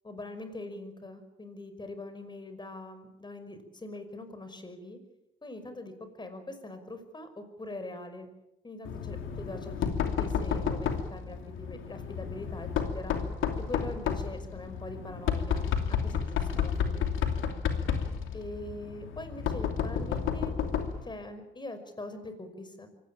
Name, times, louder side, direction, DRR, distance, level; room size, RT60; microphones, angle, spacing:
voice 1, 0.0-5.0 5.4-5.9 6.2-8.3 8.6-9.9 10.2-12.7 12.9-13.2 13.7-17.1 18.3-20.5 21.0-22.9, left 2 dB, 20° left, 9 dB, 5.5 m, -42 dB
Knock, 8.8-21.1, left 7 dB, 85° left, 2.8 m, -31 dB
24.5 x 18.5 x 8.8 m, 0.91 s
cardioid pair, 90°, 20 cm